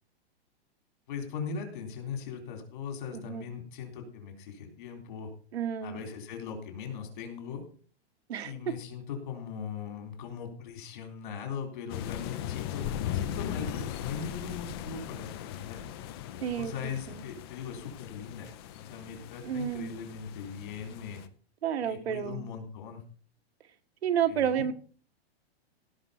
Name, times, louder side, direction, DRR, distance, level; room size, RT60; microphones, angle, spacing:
voice 1, 1.1-5.3 5.8-7.6 8.4-15.8 16.5-21.2 21.8-23.0 24.2-24.7, left 6 dB, 50° left, 4 dB, 3.7 m, -40 dB
voice 2, 5.5-6.0 8.3-8.5 16.4-16.7 17.1-17.2 19.4-19.9 21.6-22.4 24.0-24.7, right 9 dB, 85° right, 8 dB, 1.6 m, -30 dB
sound 1, 11.9-21.3, left 11 dB, 25° left, 0.6 m, -38 dB
16.5 x 6.1 x 5.7 m, 0.43 s
hypercardioid pair, 170°, 31 cm